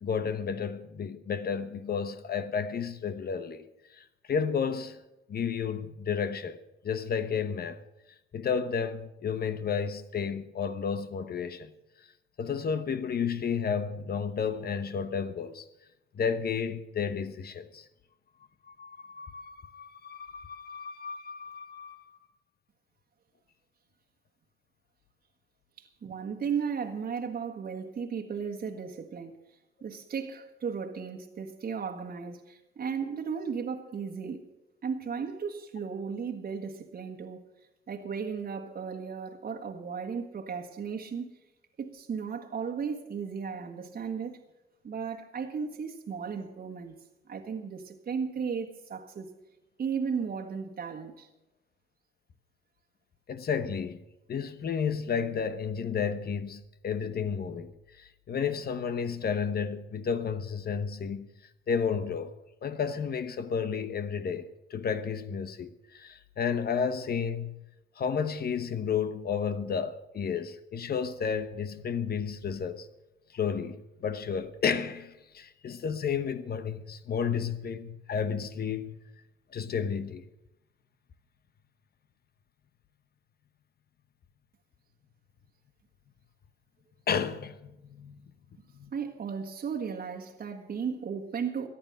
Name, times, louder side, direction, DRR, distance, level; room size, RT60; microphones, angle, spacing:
voice 1, 0.0-5.0 5.3-7.8 8.3-11.7 12.4-15.7 16.1-17.9 18.7-22.2 53.3-54.0 54.3-61.3 61.7-62.3 62.6-67.5 68.0-72.9 73.3-79.0 79.5-80.2 87.1-88.2 88.7-88.9, left 6 dB, 50° left, 1.0 m, -32 dB
voice 2, 25.8-29.4 29.8-34.4 34.8-37.4 37.9-41.3 41.8-44.4 44.8-47.0 47.3-49.3 49.8-51.3 88.9-91.7, right 6 dB, 50° right, 1.5 m, -35 dB
14.0 x 10.0 x 7.7 m
cardioid pair, 90°, 20 cm